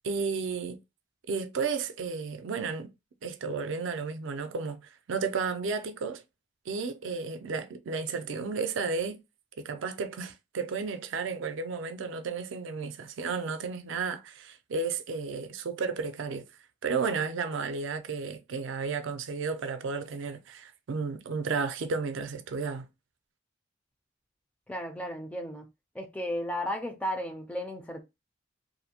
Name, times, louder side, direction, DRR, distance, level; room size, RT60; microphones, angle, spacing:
voice 1, 0.0-0.8 1.3-2.9 3.2-4.8 5.1-6.2 6.7-9.2 9.6-16.4 16.8-22.8, right 5 dB, 70° right, 0.4 m, -33 dB
voice 2, 24.7-25.7 25.9-28.0, equal, 5° left, 0.4 m, -34 dB
2.6 x 2.1 x 2.7 m
head